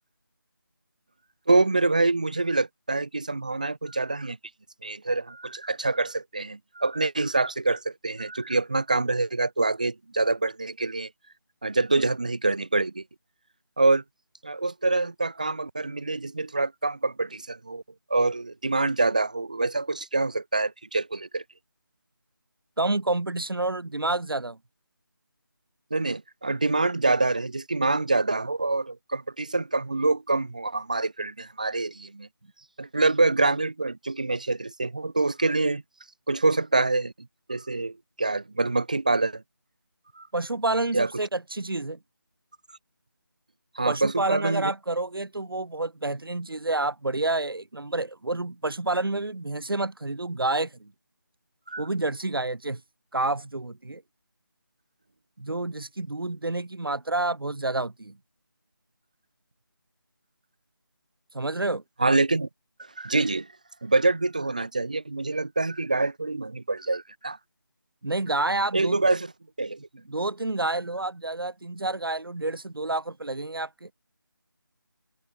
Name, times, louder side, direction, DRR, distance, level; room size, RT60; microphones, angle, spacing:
voice 1, 1.5-4.4 4.8-11.1 11.6-13.0 13.8-14.0 14.4-17.8 18.1-21.4 25.9-32.3 32.8-35.8 36.3-37.1 37.5-39.4 40.2-40.3 40.9-41.1 43.7-44.7 51.7-51.8 62.0-62.5 63.0-63.5 63.8-67.4 68.7-69.3 69.6-69.8, right 3 dB, 20° right, 0.9 m, -25 dB
voice 2, 22.8-24.6 40.3-42.0 43.8-50.9 51.8-52.8 53.1-54.0 55.4-58.2 61.3-61.8 68.0-69.0 70.1-73.9, right 2 dB, 75° right, 2.3 m, -29 dB
figure-of-eight pair, 180°, 12 cm